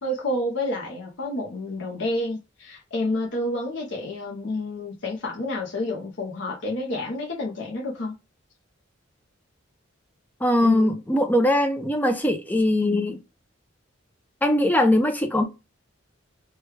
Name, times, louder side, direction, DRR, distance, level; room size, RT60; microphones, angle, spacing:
voice 1, 0.0-8.1 10.6-11.0, left 1 dB, 60° left, 0.7 m, -29 dB
voice 2, 10.4-13.2 14.4-15.4, left 1 dB, 10° left, 0.4 m, -21 dB
3.0 x 2.2 x 3.2 m
head